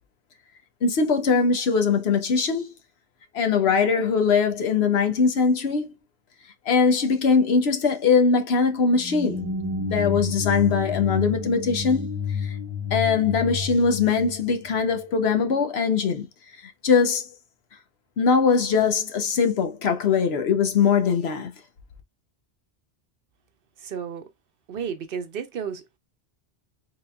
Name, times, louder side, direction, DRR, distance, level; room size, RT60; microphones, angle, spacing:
voice 1, 0.8-2.7 3.3-5.9 6.7-9.5 9.8-12.1 12.4-12.6 12.9-16.3 16.8-17.2 18.2-21.5, left 5 dB, 70° left, 1.0 m, -21 dB
sound 1, 8.9-15.0, left 4 dB, 20° right, 0.7 m, -30 dB
voice 2, 23.8-24.2 24.7-26.0, right 7 dB, 60° right, 0.8 m, -32 dB
3.9 x 3.7 x 2.2 m
omnidirectional pair, 1.1 m